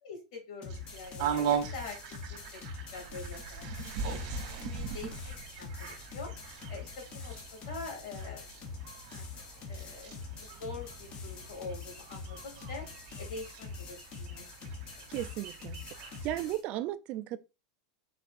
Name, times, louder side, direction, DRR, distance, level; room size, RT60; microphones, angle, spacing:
voice 1, 0.0-2.6 2.9-5.7 6.1-6.3 6.7-8.8 9.1-9.2 9.7-12.9 13.2-15.1, left 4 dB, 60° left, 2.6 m, -45 dB
sound 1, 0.6-16.6, left 4 dB, 30° left, 0.7 m, -44 dB
sound 2, 0.7-16.6, right 7 dB, 50° right, 1.5 m, -40 dB
voice 2, 15.1-15.8 16.2-17.4, right 14 dB, 35° right, 0.4 m, -35 dB
4.7 x 4.1 x 2.5 m
supercardioid pair, 150°, 4 cm